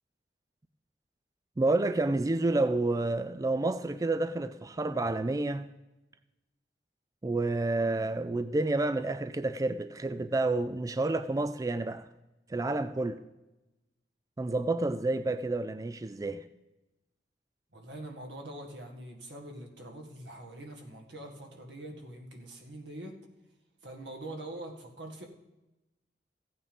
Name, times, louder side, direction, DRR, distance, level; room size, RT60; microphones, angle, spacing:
voice 1, 1.6-5.7 7.2-12.1 12.5-13.2 14.4-16.5, right 2 dB, 20° right, 0.3 m, -29 dB
voice 2, 17.7-23.1 23.8-25.3, right 1 dB, 85° right, 1.9 m, -44 dB
15.0 x 8.7 x 5.2 m
head